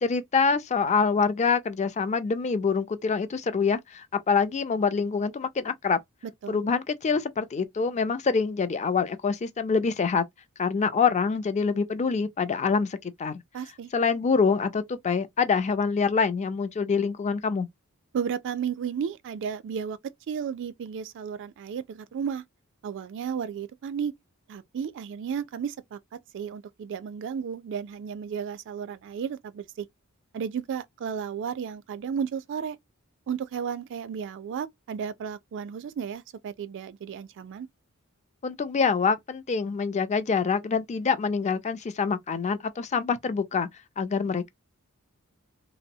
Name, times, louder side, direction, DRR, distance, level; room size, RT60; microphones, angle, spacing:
voice 1, 0.0-6.0 6.5-10.2 10.6-13.4 13.9-17.7 38.4-43.7 44.0-44.5, left 5 dB, 30° left, 0.4 m, -25 dB
voice 2, 13.5-13.9 18.1-20.0 20.3-22.4 22.8-24.1 24.5-26.0 26.3-29.9 30.3-32.8 33.3-37.7, right 7 dB, 55° right, 0.3 m, -33 dB
2.9 x 2.0 x 2.6 m
head